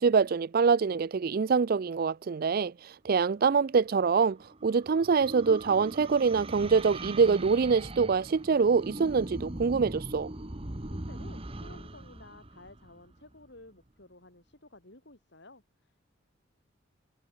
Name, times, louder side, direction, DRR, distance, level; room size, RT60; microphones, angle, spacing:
voice 1, 0.0-10.3, right 5 dB, 45° right, 0.4 m, -25 dB
sound 1, 3.9-13.5, right 1 dB, 30° right, 1.8 m, -41 dB
voice 2, 10.9-16.0, left 2 dB, 60° left, 4.5 m, -54 dB
head